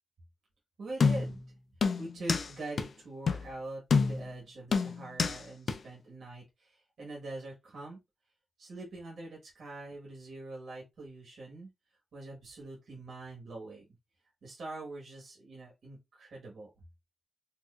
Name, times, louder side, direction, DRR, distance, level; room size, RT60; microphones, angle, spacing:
voice 1, 0.8-1.4 2.0-8.0 8.6-11.7 12.1-13.8 14.4-16.7, right 2 dB, 75° right, 1.3 m, -44 dB
sound 1, 1.0-1.4 1.8-2.5 2.8-2.9 3.3-3.5 3.9-4.3 4.7-5.4 5.7-5.8, left 5 dB, 65° left, 0.4 m, -27 dB
4.3 x 2.4 x 2.3 m
wide cardioid pair, 160°, 0 cm